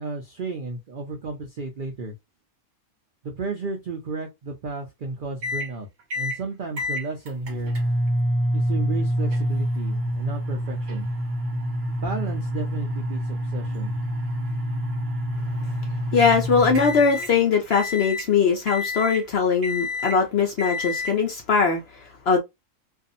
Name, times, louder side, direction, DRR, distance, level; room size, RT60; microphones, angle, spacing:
voice 1, 0.0-2.1 3.2-5.9 6.1-7.7 8.5-11.1 12.0-14.0, right 3 dB, 85° right, 0.4 m, -33 dB
sound 1, 5.4-5.7 6.1-6.4 6.8-17.3 17.7-18.3 18.7-19.2 19.6-20.2 20.6-21.1, equal, 55° right, 0.7 m, -27 dB
voice 2, 16.1-21.8 22.3-22.4, left 5 dB, 60° left, 0.7 m, -21 dB
2.6 x 2.4 x 2.5 m
omnidirectional pair, 1.6 m